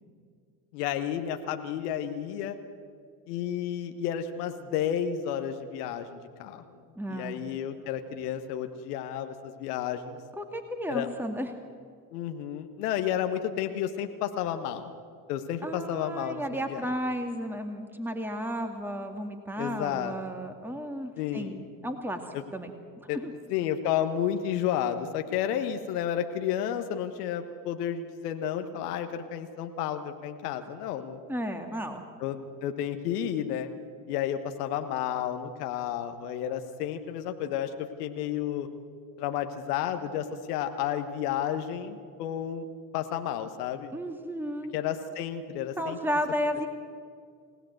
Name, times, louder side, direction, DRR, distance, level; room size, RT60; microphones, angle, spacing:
voice 1, 0.7-2.6 3.3-6.8 7.1-10.2 10.9-11.1 12.1-14.9 15.3-16.4 16.7-16.8 19.6-20.1 21.2-21.6 22.3-22.4 23.1-23.2 23.5-31.2 32.2-33.7 34.1-38.7 39.2-42.6 42.9-43.9 44.7-46.0, left 10 dB, 70° left, 7 dB, 1.4 m, -31 dB
voice 2, 7.0-7.5 10.4-11.5 15.6-22.7 23.0-23.3 31.3-32.0 43.9-44.7 45.8-46.7, equal, 5° right, 5 dB, 2.2 m, -33 dB
28.5 x 17.5 x 7.9 m, 2.2 s
figure-of-eight pair, 50°, 48 cm